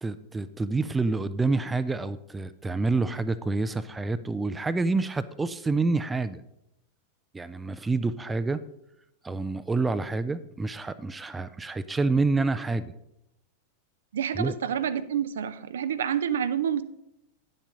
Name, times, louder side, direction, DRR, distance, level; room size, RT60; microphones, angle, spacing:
voice 1, 0.0-6.4 7.3-8.6 9.2-12.9 14.3-14.5, right 3 dB, 10° right, 0.5 m, -28 dB
voice 2, 14.1-16.8, right 8 dB, 65° right, 0.5 m, -28 dB
10.0 x 7.4 x 5.2 m
figure-of-eight pair, 90°, 0 cm